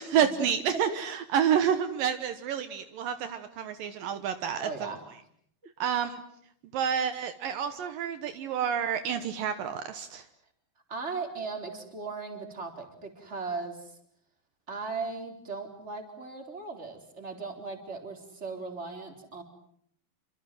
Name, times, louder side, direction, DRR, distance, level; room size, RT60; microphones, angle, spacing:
voice 1, 0.0-4.7 5.8-6.2 6.7-10.2, right 8 dB, 75° right, 9 dB, 2.8 m, -29 dB
voice 2, 4.5-5.0 10.9-14.0 14.7-19.4, right 4 dB, 20° right, 4 dB, 4.1 m, -37 dB
28.0 x 25.5 x 7.7 m, 0.68 s
omnidirectional pair, 4.2 m